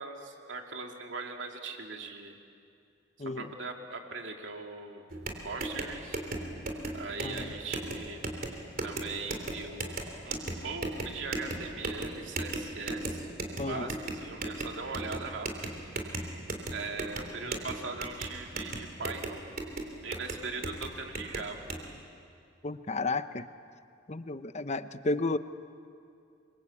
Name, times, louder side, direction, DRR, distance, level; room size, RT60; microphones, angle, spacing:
voice 1, 0.0-2.4 3.4-5.1 5.4-6.2 6.9-8.3 8.8-9.9 10.2-13.3 13.5-15.5 15.8-16.1 16.7-19.4 20.0-21.6, right 4 dB, 75° right, 2 dB, 2.7 m, -40 dB
voice 2, 3.2-3.5 7.2-7.5 13.6-14.0 22.6-23.5 24.1-25.4, left 2 dB, 35° left, 12 dB, 0.8 m, -32 dB
sound 1, 5.1-21.8, right 2 dB, 50° right, 3.3 m, -37 dB
28.5 x 24.0 x 8.6 m, 2.5 s
head